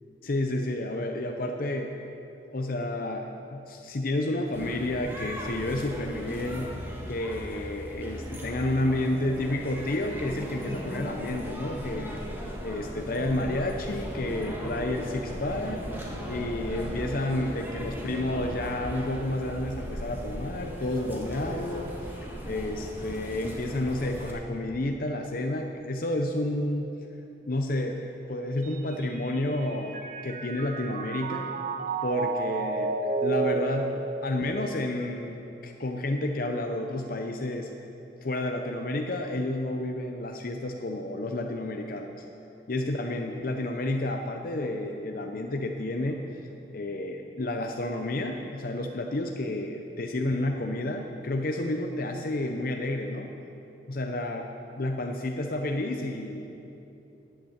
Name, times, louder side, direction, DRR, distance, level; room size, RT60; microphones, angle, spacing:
voice 1, 0.2-1.9 2.5-6.7 7.1-12.2 12.6-15.9 16.3-22.2 22.5-26.9 27.4-28.0 28.3-30.0 30.2-31.5 32.0-33.0 33.2-37.7 38.2-42.2 42.7-46.2 46.7-53.3 53.9-54.4 54.8-56.5, left 1 dB, 55° left, 3 dB, 0.6 m, -30 dB
sound 1, 4.5-24.3, equal, 10° right, 1.5 m, -37 dB
Mallet percussion, 28.6-35.1, right 3 dB, 45° right, 0.8 m, -32 dB
10.5 x 9.0 x 7.3 m, 2.9 s
head